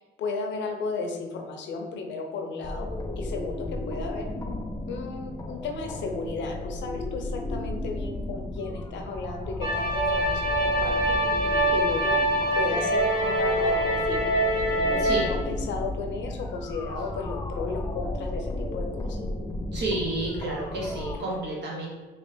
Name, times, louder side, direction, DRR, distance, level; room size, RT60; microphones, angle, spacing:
voice 1, 0.0-4.3 4.9-12.2 12.5-14.3 14.7-19.2 21.1-21.2, left 4 dB, 70° left, 3 dB, 0.5 m, -34 dB
sound 1, 2.6-21.2, left 1 dB, 20° left, 0.3 m, -34 dB
sound 2, 9.6-15.3, right 1 dB, 20° right, 1.3 m, -24 dB
voice 2, 19.7-21.9, right 2 dB, 60° right, -3 dB, 0.8 m, -30 dB
3.1 x 2.8 x 3.1 m, 1.3 s
cardioid pair, 90°, 20 cm